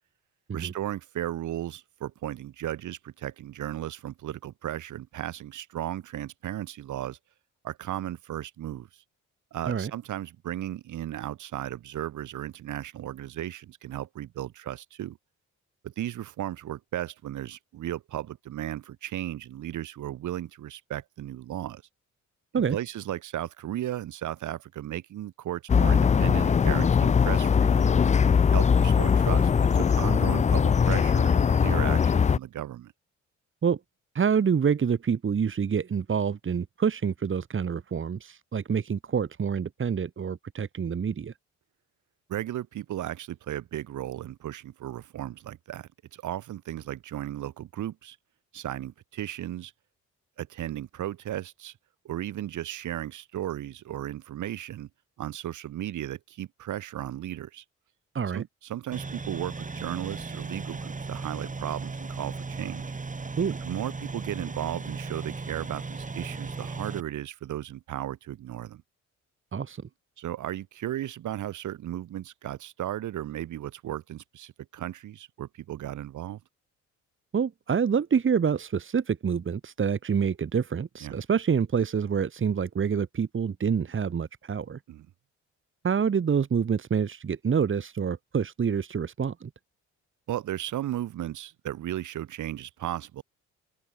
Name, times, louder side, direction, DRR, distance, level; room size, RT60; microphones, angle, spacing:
voice 1, 0.5-7.2 7.6-8.9 9.5-15.2 15.8-21.8 22.5-27.9 28.5-32.9 42.3-48.2 48.5-49.7 50.4-51.7 52.0-54.9 55.2-57.6 58.3-62.9 63.6-68.8 70.2-76.4 81.0-81.2 84.9-85.1 90.3-93.2, right 12 dB, 75° right, 6.2 m, -35 dB
sound 1, 25.7-32.4, left 6 dB, 25° left, 0.4 m, -21 dB
voice 2, 34.1-41.3 58.1-58.4 63.4-63.6 69.5-69.8 77.3-84.8 85.8-89.5, right 6 dB, 40° right, 2.7 m, -27 dB
sound 2, 58.9-67.0, right 4 dB, 25° right, 6.6 m, -36 dB
open air
cardioid pair, 90°, 30 cm